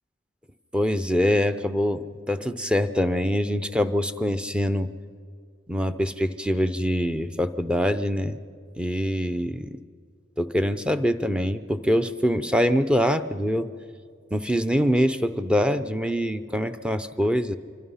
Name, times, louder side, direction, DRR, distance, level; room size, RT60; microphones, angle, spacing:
voice 1, 0.7-4.9 5.7-8.4 8.8-9.7 10.4-13.7 14.3-17.6, equal, 5° right, 10 dB, 0.6 m, -24 dB
26.0 x 24.0 x 5.7 m, 2.1 s
head